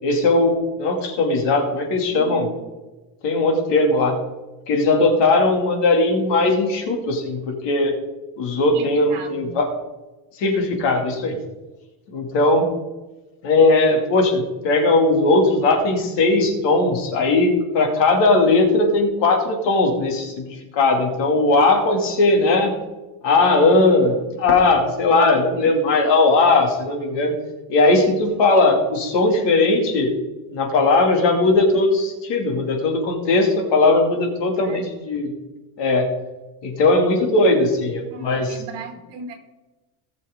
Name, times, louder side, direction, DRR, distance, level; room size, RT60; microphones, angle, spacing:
voice 1, 0.0-2.5 3.2-4.2 4.7-7.9 8.4-9.7 10.4-11.4 12.1-12.7 13.4-22.7 23.2-27.3 27.7-30.1 30.5-35.3 35.8-36.1 36.6-38.6, left 2 dB, 65° left, 3 dB, 2.6 m, -18 dB
voice 2, 2.1-2.5 8.7-9.5 34.3-34.9 38.1-39.3, right 3 dB, 60° right, 3 dB, 2.5 m, -37 dB
19.0 x 6.8 x 3.7 m, 1.1 s
cardioid pair, 165°, 46 cm